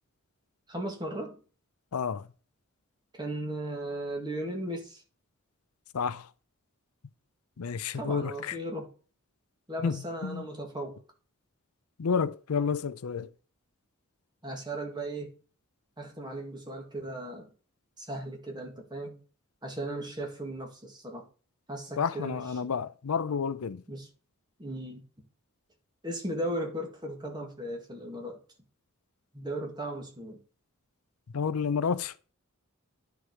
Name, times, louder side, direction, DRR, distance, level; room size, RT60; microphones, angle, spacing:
voice 1, 0.7-1.4 3.1-5.0 7.9-8.9 9.7-11.0 14.4-15.4 16.0-17.5 18.0-19.2 19.6-21.2 21.7-22.7 23.9-24.1 24.6-25.0 26.0-28.4 29.3-30.4, right 1 dB, 20° right, 2.0 m, -36 dB
voice 2, 1.9-2.3 5.9-6.3 7.6-8.6 9.8-10.0 10.2-10.4 12.0-13.3 22.0-23.8 31.3-32.1, left 6 dB, 85° left, 0.5 m, -30 dB
9.9 x 4.7 x 4.8 m
head